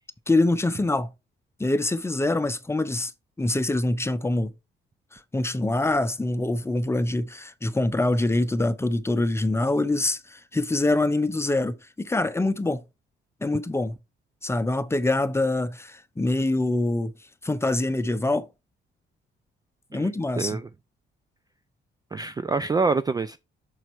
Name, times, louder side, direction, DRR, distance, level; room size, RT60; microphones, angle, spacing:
voice 1, 0.3-1.1 1.6-3.1 3.4-4.5 5.1-12.8 13.4-13.9 14.4-17.1 17.4-18.5 19.9-20.6, left 2 dB, 15° left, 0.7 m, -25 dB
voice 2, 20.4-20.7 22.1-23.4, right 4 dB, 20° right, 0.4 m, -26 dB
6.4 x 4.2 x 4.6 m
cardioid pair, 90°, 20 cm